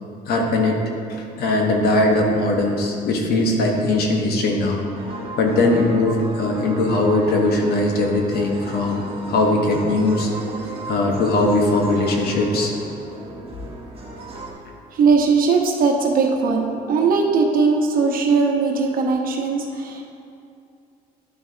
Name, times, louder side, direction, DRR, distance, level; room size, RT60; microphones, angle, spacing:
voice 1, 0.3-0.8 1.1-4.8 5.4-10.3 10.9-12.7, left 2 dB, 70° left, 1 dB, 1.3 m, -20 dB
sound 1, 4.9-14.5, right 2 dB, 35° right, 1.2 m, -36 dB
voice 2, 14.9-20.0, right 4 dB, 55° right, 1 dB, 1.1 m, -19 dB
11.0 x 6.1 x 2.8 m, 2.6 s
cardioid pair, 110°, 17 cm